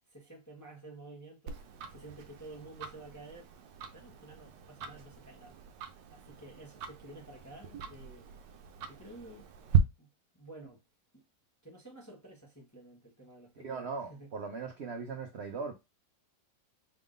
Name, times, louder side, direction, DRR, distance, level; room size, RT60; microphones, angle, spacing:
voice 1, 0.1-1.6 1.9-3.5 3.9-5.6 6.1-8.3 8.9-9.5 9.8-10.8 11.1-11.2 11.6-14.3, right 2 dB, 15° left, 0.7 m, -51 dB
Tick-tock, 1.5-9.8, right 9 dB, 80° right, 1.3 m, -37 dB
voice 2, 13.6-15.7, right 4 dB, 60° right, 0.7 m, -39 dB
4.3 x 3.6 x 2.5 m
omnidirectional pair, 1.9 m